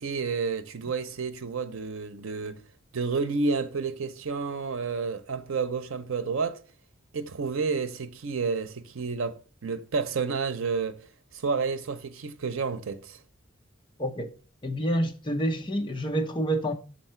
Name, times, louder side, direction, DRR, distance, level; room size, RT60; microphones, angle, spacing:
voice 1, 0.0-2.6 2.9-6.6 7.1-11.0 11.4-13.2, right 4 dB, 90° right, 0.6 m, -30 dB
voice 2, 14.0-14.3 14.6-16.7, right 1 dB, 25° left, 0.8 m, -28 dB
6.4 x 4.3 x 4.3 m
head